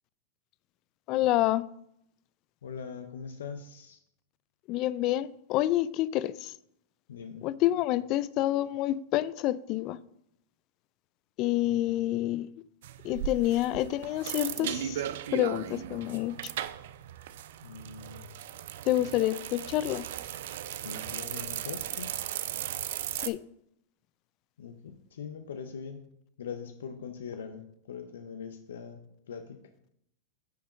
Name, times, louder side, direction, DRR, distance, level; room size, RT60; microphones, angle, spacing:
voice 1, 1.1-1.6 4.7-6.5 7.4-10.0 11.4-12.5 13.0-15.0 15.3-16.4 18.9-20.0 23.2-23.4, left 14 dB, 45° left, 0.4 m, -28 dB
voice 2, 2.6-4.0 7.1-7.5 11.7-12.2 17.6-18.2 20.8-22.2 24.6-26.0 26.4-29.0 29.3-29.6, left 6 dB, 80° left, 0.7 m, -42 dB
sound 1, 12.8-23.3, right 11 dB, 70° right, 0.4 m, -37 dB
9.6 x 3.6 x 5.1 m
hypercardioid pair, 115°, 0 cm